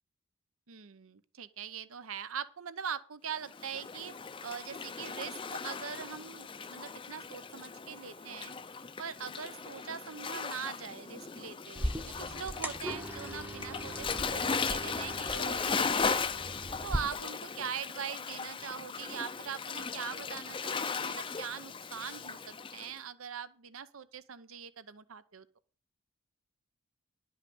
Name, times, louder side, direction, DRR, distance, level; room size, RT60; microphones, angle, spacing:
voice 1, 0.7-4.1 4.4-8.5 9.0-16.3 16.8-25.5, right 7 dB, 80° right, 14 dB, 0.8 m, -42 dB
Waves surf, 3.5-22.9, left 5 dB, 25° left, 0.5 m, -37 dB
sound 1, 11.7-17.0, equal, 10° right, 0.8 m, -39 dB
11.0 x 5.7 x 7.8 m, 0.40 s
head